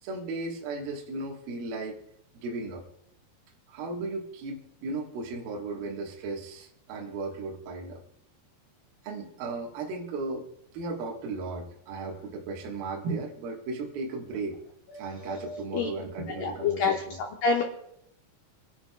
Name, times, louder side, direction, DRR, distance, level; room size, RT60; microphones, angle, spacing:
voice 1, 0.0-2.0 2.4-2.8 3.7-8.0 9.0-10.5 10.7-14.6 15.0-17.2, right 3 dB, 60° right, -1 dB, 3.0 m, -35 dB
voice 2, 14.9-15.9 16.4-16.9 17.4-17.6, left 5 dB, 80° left, 0 dB, 1.9 m, -28 dB
27.5 x 11.0 x 2.3 m, 0.75 s
omnidirectional pair, 5.2 m